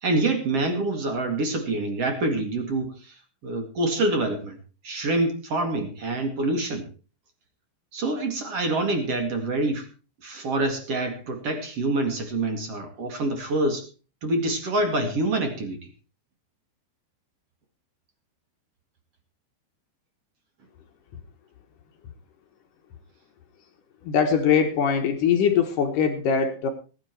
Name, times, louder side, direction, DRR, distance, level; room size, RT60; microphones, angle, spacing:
voice 1, 0.0-2.9 3.4-4.6 4.8-6.9 7.9-9.9 10.2-13.9 14.2-15.9, right 2 dB, 45° right, 6 dB, 2.3 m, -26 dB
voice 2, 24.0-26.7, left 7 dB, 65° left, 5 dB, 2.1 m, -22 dB
18.5 x 10.5 x 4.6 m, 0.35 s
omnidirectional pair, 5.5 m